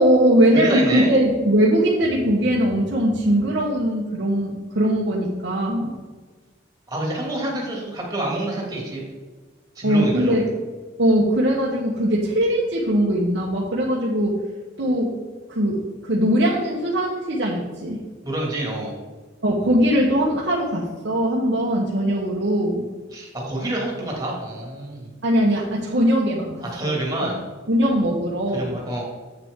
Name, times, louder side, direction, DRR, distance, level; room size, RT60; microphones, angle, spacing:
voice 1, 0.0-5.9 9.8-10.5 11.0-14.3 14.8-15.2 15.5-18.0 19.4-22.9 25.2-27.3 27.7-28.8, equal, 65° right, -5 dB, 1.2 m, -20 dB
voice 2, 0.5-1.1 6.9-9.0 9.8-10.4 18.2-18.9 23.1-25.1 26.6-27.4 28.5-29.0, right 1 dB, 20° right, -2 dB, 2.2 m, -27 dB
8.1 x 7.1 x 3.7 m, 1.4 s
head